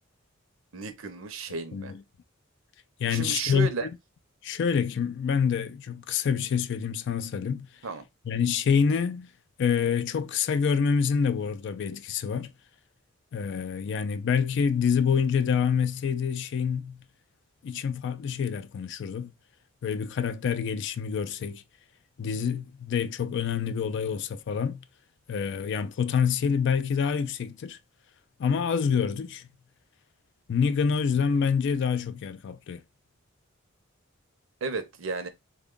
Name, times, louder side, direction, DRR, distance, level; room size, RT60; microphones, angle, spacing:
voice 1, 0.7-1.9 3.1-3.9 7.8-8.1 34.6-35.3, right 4 dB, 70° right, 0.7 m, -33 dB
voice 2, 3.0-3.9 4.4-7.7 8.3-9.3 9.6-12.5 13.3-17.0 17.6-19.3 19.8-21.6 22.2-24.8 25.3-27.8 28.4-29.4 30.5-32.8, left 6 dB, 55° left, 0.3 m, -27 dB
3.5 x 2.2 x 3.7 m
head